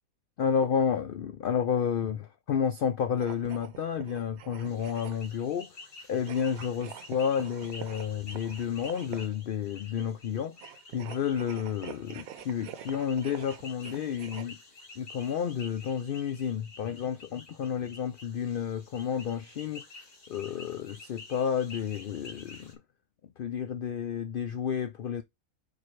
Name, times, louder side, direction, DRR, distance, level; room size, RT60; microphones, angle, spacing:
voice 1, 0.4-5.8 6.1-10.6 10.9-14.6 15.0-19.8 20.3-22.8 23.4-25.2, left 7 dB, 70° left, 0.5 m, -31 dB
sound 1, 3.1-5.4 6.2-9.4 10.5-14.4, right 9 dB, 80° right, 1.1 m, -46 dB
sound 2, 4.6-22.7, left 3 dB, 45° left, 1.6 m, -50 dB
4.7 x 4.4 x 4.5 m
omnidirectional pair, 1.5 m